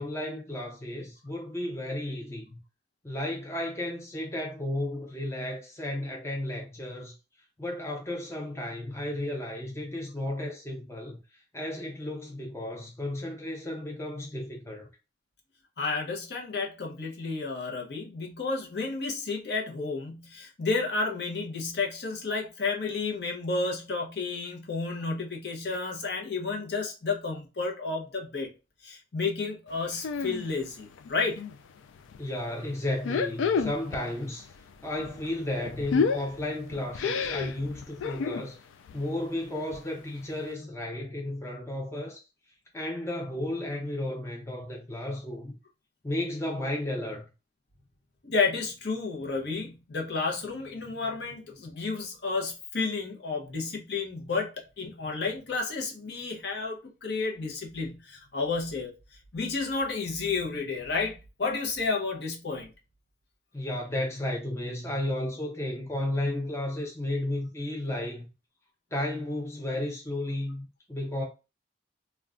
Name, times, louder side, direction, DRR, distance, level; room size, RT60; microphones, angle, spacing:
voice 1, 0.0-2.6 3.0-7.1 7.6-11.2 11.5-14.9 32.2-34.5 34.8-38.6 38.9-42.2 42.7-45.6 46.0-47.3 63.5-68.3 68.9-71.2, left 1 dB, 15° left, 0.4 m, -33 dB
voice 2, 15.8-28.5 28.8-31.4 48.2-58.9 59.3-62.7, left 4 dB, 60° left, 0.7 m, -31 dB
sound 1, 30.0-30.5 30.8-31.6 32.0-32.2 32.9-34.1 34.4-38.5 38.9-39.1 39.4-39.5 39.7-39.8 40.3-40.4, left 5 dB, 90° left, 0.3 m, -30 dB
2.3 x 2.2 x 3.5 m
head